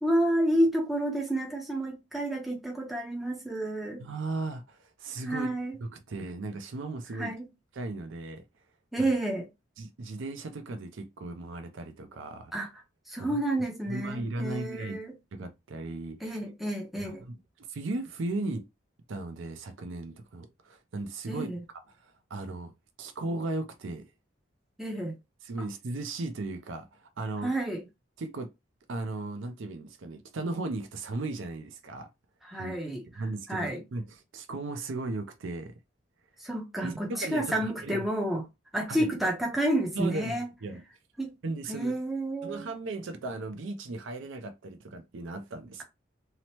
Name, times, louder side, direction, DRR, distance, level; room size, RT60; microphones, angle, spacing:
voice 1, 0.0-4.0 5.3-5.7 7.2-7.5 8.9-9.5 12.5-12.7 13.1-15.1 16.2-17.3 21.3-21.6 24.8-25.1 27.4-27.8 32.4-33.0 33.5-33.8 36.4-38.4 38.7-40.5 41.2-41.3 41.7-42.6, right 1 dB, ahead, 0.5 m, -30 dB
voice 2, 4.0-5.5 5.8-7.3 7.7-8.4 9.8-12.5 13.2-13.4 13.9-15.0 15.3-16.4 17.0-17.1 17.6-18.7 19.1-21.5 22.0-22.7 23.0-24.1 25.4-27.5 28.2-28.5 28.9-32.1 32.5-32.7 33.2-35.8 36.8-38.0 38.9-39.1 39.9-40.8 41.4-41.9 42.4-45.8, right 2 dB, 75° right, 0.5 m, -36 dB
2.8 x 2.0 x 2.9 m
head